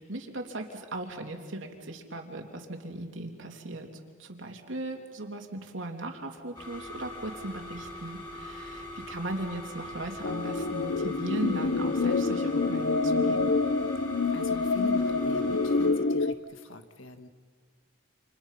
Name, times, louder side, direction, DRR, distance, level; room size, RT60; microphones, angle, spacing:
voice 1, 0.0-3.9 4.2-13.6, right 2 dB, 80° right, 3 dB, 3.1 m, -38 dB
sound 1, 6.5-15.9, left 1 dB, 20° left, 7.9 m, -42 dB
sound 2, 10.2-16.3, left 3 dB, 65° left, 0.7 m, -27 dB
voice 2, 14.3-17.3, left 2 dB, 85° left, 7 dB, 1.9 m, -43 dB
30.0 x 28.0 x 5.8 m, 1.6 s
head